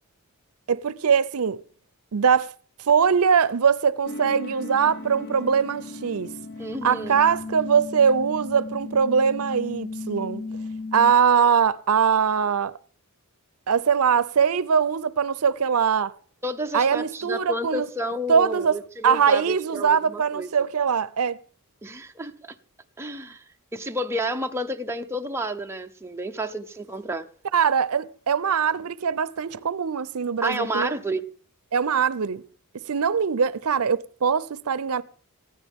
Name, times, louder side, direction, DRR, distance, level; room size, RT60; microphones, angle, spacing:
voice 1, 0.7-1.6 2.1-2.5 2.9-6.3 6.8-10.4 10.9-12.7 13.7-16.1 16.7-17.9 18.3-18.8 19.0-21.4 27.5-30.9 31.7-32.4 32.9-35.0, right 6 dB, 75° right, 0.6 m, -22 dB
sound 1, 4.0-11.1, left 3 dB, 50° left, 1.0 m, -36 dB
voice 2, 6.6-7.2 16.4-20.5 21.8-22.5 23.0-23.4 23.7-27.3 30.4-31.2, equal, 10° right, 0.8 m, -30 dB
20.0 x 14.5 x 3.6 m
head